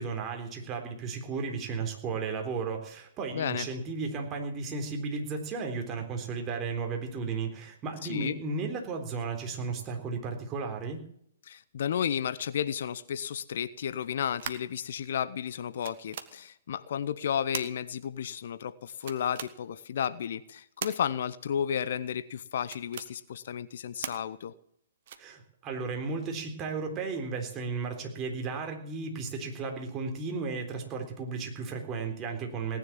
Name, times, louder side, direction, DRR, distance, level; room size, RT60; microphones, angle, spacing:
voice 1, 0.0-11.0 25.2-32.8, right 4 dB, 25° right, 3.8 m, -34 dB
voice 2, 3.3-3.7 8.0-8.4 11.5-24.5, left 8 dB, 55° left, 0.8 m, -33 dB
sound 1, 14.0-14.8 15.5-15.6 15.8-16.3 17.5-17.7 19.0-19.5 20.8-20.9 22.6-23.1 24.0-24.2 25.1-25.4, right 9 dB, 50° right, 1.6 m, -38 dB
18.5 x 10.5 x 7.5 m
figure-of-eight pair, 125°, 0 cm